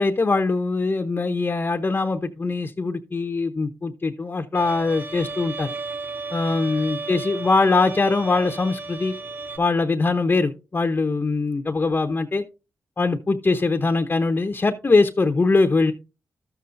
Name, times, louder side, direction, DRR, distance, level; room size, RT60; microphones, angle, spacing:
voice 1, 0.0-5.7 6.3-9.1 9.6-12.4 13.0-15.9, left 3 dB, 35° left, 0.8 m, -22 dB
Bowed string instrument, 4.5-9.6, right 3 dB, 35° right, 3.3 m, -34 dB
12.5 x 7.0 x 2.6 m
cardioid pair, 60°, 6 cm